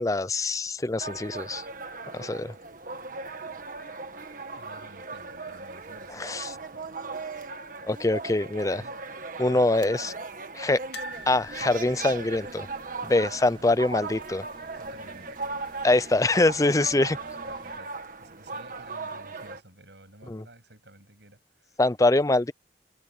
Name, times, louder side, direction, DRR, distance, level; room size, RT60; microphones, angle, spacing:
voice 1, 0.0-1.6 2.1-2.5 6.2-6.5 7.8-8.8 9.4-10.1 10.5-10.8 11.3-12.7 13.0-14.4 15.8-17.2 20.3-20.4 21.8-22.5, left 2 dB, 20° left, 0.5 m, -24 dB
sound 1, 1.0-19.6, right 3 dB, 50° right, 1.6 m, -38 dB
voice 2, 4.1-7.0 13.6-13.7 14.7-15.4 16.9-21.8, right 2 dB, 75° right, 7.8 m, -52 dB
sound 2, 10.9-14.0 14.2-14.5 14.7-14.8 16.0-16.6 17.1-17.2, equal, 70° left, 2.6 m, -46 dB
sound 3, 11.1-17.8, right 1 dB, 30° right, 4.1 m, -52 dB
head